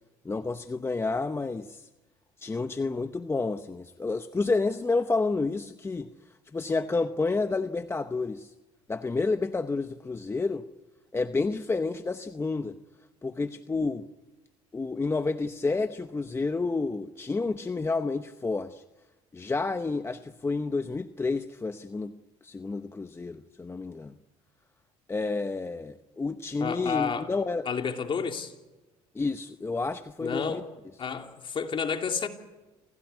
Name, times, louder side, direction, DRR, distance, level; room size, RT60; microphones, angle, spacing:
voice 1, 0.2-1.9 2.4-6.1 6.5-8.5 8.9-10.6 11.1-12.7 13.2-14.1 14.7-18.8 19.3-22.2 22.4-24.1 25.1-27.7 29.1-30.6, left 3 dB, 20° left, 0.9 m, -30 dB
voice 2, 26.6-27.3 27.6-28.5 30.2-30.7 31.0-32.3, left 6 dB, 40° left, 2.9 m, -30 dB
27.5 x 16.0 x 9.6 m
supercardioid pair, 90°, 13 cm